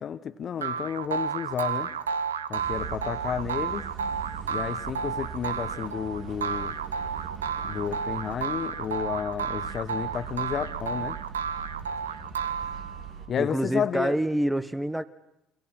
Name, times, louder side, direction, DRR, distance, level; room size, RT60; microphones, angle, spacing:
voice 1, 0.0-1.9 2.5-3.8 4.5-6.7 7.6-11.2 13.3-14.1, left 8 dB, 45° left, 12 dB, 1.2 m, -31 dB
sound 1, 0.6-13.1, right 6 dB, 85° right, 0.8 m, -32 dB
sound 2, 2.6-13.3, right 7 dB, 60° right, 3.8 m, -41 dB
voice 2, 13.4-15.0, right 1 dB, 5° right, 13 dB, 1.2 m, -27 dB
28.5 x 23.5 x 6.0 m, 0.87 s
figure-of-eight pair, 55°, 0 cm